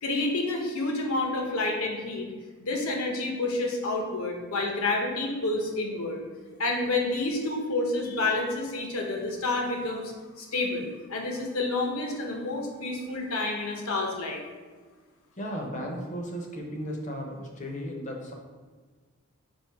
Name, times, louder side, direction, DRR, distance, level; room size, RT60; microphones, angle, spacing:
voice 1, 0.0-2.3 2.6-6.2 6.6-10.1 10.4-14.4, left 2 dB, 80° left, 1 dB, 0.8 m, -29 dB
voice 2, 15.4-18.3, equal, 35° left, 1 dB, 0.6 m, -35 dB
4.4 x 2.6 x 4.5 m, 1.4 s
head